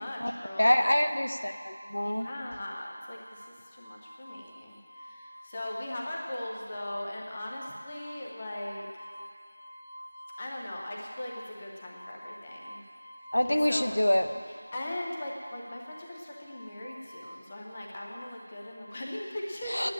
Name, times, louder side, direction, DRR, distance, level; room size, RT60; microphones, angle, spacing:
voice 1, 0.0-0.9 2.0-8.9 10.4-12.8 13.4-13.9 14.5-19.9, left 1 dB, 10° left, -2 dB, 0.6 m, -39 dB
voice 2, 0.6-2.3 13.3-14.3 19.7-19.9, left 1 dB, 75° left, 7 dB, 0.9 m, -26 dB
sound 1, 0.7-18.7, equal, 55° left, 2.7 m, -49 dB
10.0 x 9.4 x 8.6 m, 2.1 s
figure-of-eight pair, 180°, 0 cm